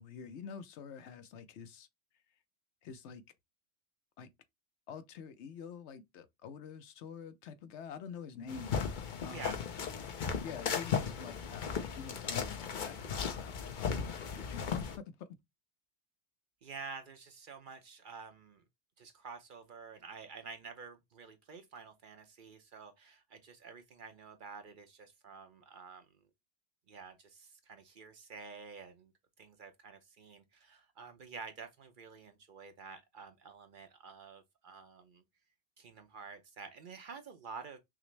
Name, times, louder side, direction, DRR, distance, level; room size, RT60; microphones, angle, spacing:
voice 1, 0.0-1.9 2.8-3.2 4.2-4.3 4.9-8.7 9.2-9.6 10.4-15.3, left 6 dB, 80° left, 0.9 m, -47 dB
sound 1, 8.5-15.0, left 6 dB, 50° left, 0.7 m, -36 dB
voice 2, 9.2-9.6 16.6-18.6 19.0-26.3 26.9-29.1 29.4-35.2 35.8-37.8, right 5 dB, 55° right, 0.8 m, -49 dB
5.9 x 2.0 x 3.1 m
omnidirectional pair, 1.2 m